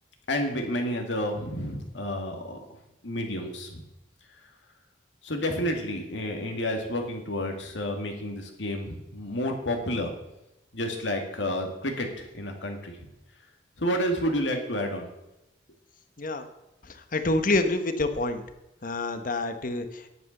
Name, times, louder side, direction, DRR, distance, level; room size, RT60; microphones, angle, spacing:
voice 1, 0.3-2.6 3.0-3.8 5.2-10.1 10.7-13.1 13.8-15.1, equal, 85° left, 3 dB, 2.2 m, -30 dB
voice 2, 17.1-18.4 18.8-20.1, left 2 dB, 50° left, 9 dB, 1.1 m, -27 dB
11.0 x 8.2 x 6.6 m, 0.92 s
head